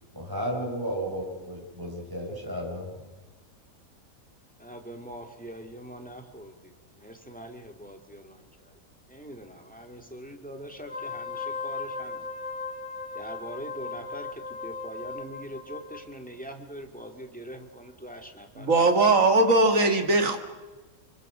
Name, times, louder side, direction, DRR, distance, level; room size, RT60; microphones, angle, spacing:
voice 1, 0.1-2.9, equal, 15° right, -1 dB, 5.5 m, -33 dB
voice 2, 4.6-8.8 9.1-12.3 13.1-18.9, right 1 dB, 5° left, 4 dB, 2.4 m, -43 dB
Wind instrument woodwind instrument, 10.8-16.1, left 4 dB, 80° left, 2.6 m, -37 dB
voice 3, 18.6-20.4, right 2 dB, 65° right, 6 dB, 2.4 m, -20 dB
26.0 x 23.5 x 6.3 m, 1.2 s
omnidirectional pair, 1.5 m